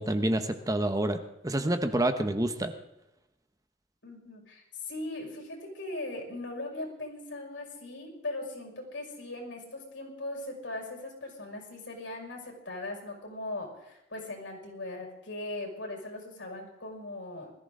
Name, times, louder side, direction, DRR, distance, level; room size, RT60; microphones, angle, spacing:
voice 1, 0.0-2.7, right 1 dB, 20° right, 8 dB, 1.0 m, -28 dB
voice 2, 4.0-17.5, left 2 dB, 85° left, 1 dB, 6.0 m, -39 dB
21.0 x 15.0 x 3.8 m, 0.88 s
head